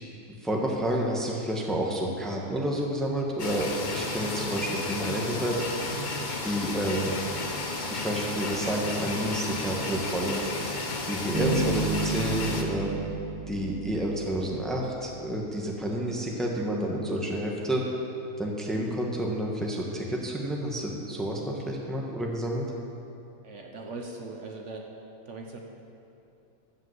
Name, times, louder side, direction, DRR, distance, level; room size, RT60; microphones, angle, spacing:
voice 1, 0.4-3.6 3.9-5.6 6.4-7.1 7.9-10.4 11.0-12.9 13.5-17.8 18.4-22.7, right 1 dB, ahead, -1 dB, 1.1 m, -29 dB
sound 1, 3.4-12.6, left 2 dB, 35° left, 1.0 m, -33 dB
sound 2, 11.3-14.7, right 3 dB, 20° right, 1.5 m, -31 dB
voice 2, 23.4-25.0 25.3-25.6, right 3 dB, 60° right, 1 dB, 1.2 m, -40 dB
14.0 x 5.5 x 7.8 m, 2.7 s
omnidirectional pair, 1.5 m